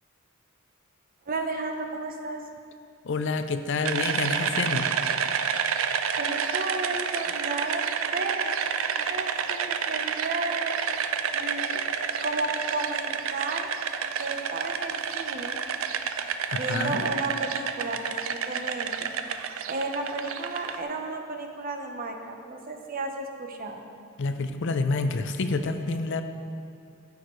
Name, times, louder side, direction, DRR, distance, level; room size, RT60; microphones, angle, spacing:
voice 1, 1.3-2.4 6.2-7.8 8.1-8.6 9.0-10.8 11.3-11.8 12.2-13.7 14.2-15.6 16.5-19.1 19.7-23.9, right 2 dB, 45° right, 4 dB, 0.8 m, -33 dB
voice 2, 3.0-4.9 16.5-17.0 24.2-26.2, left 3 dB, 60° left, 8 dB, 0.5 m, -28 dB
sound 1, 3.8-20.8, right 7 dB, 75° right, 0.5 m, -29 dB
14.5 x 6.5 x 3.1 m, 2.4 s
head